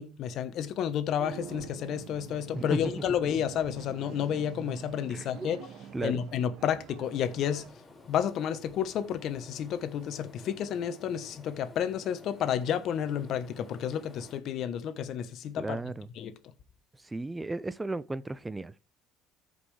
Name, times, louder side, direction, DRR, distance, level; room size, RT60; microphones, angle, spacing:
voice 1, 0.0-5.6 6.0-7.6 8.1-16.3, left 9 dB, 60° left, 1.0 m, -31 dB
sound 1, 1.2-7.7, right 8 dB, 65° right, 1.1 m, -46 dB
voice 2, 5.1-5.5 5.9-6.2 15.6-16.1 17.0-18.8, right 2 dB, 15° right, 0.5 m, -35 dB
sound 2, 7.0-14.4, left 2 dB, 25° left, 5.2 m, -52 dB
14.0 x 5.3 x 3.3 m
supercardioid pair, 75°, 0 cm